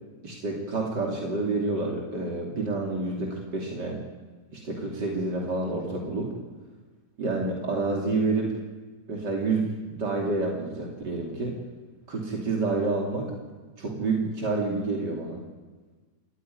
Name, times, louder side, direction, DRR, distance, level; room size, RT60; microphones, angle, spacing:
voice 1, 0.2-4.0 4.5-6.3 7.2-8.5 9.1-11.6 12.1-13.3 13.8-15.4, right 3 dB, 85° right, 0 dB, 3.7 m, -28 dB
29.0 x 15.5 x 9.6 m, 1.3 s
omnidirectional pair, 1.8 m